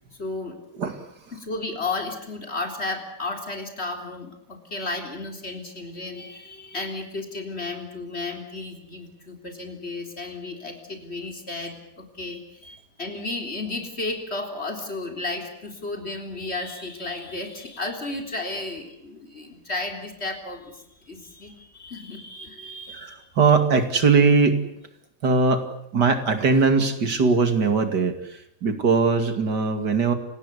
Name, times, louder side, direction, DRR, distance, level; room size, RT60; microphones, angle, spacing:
voice 1, 0.2-0.6 1.3-23.2, left 2 dB, 40° left, 3 dB, 4.0 m, -33 dB
voice 2, 0.8-1.1 22.9-24.6 25.2-25.7 25.9-30.1, right 4 dB, 80° right, 7 dB, 3.0 m, -20 dB
29.5 x 18.5 x 8.3 m, 0.75 s
omnidirectional pair, 1.8 m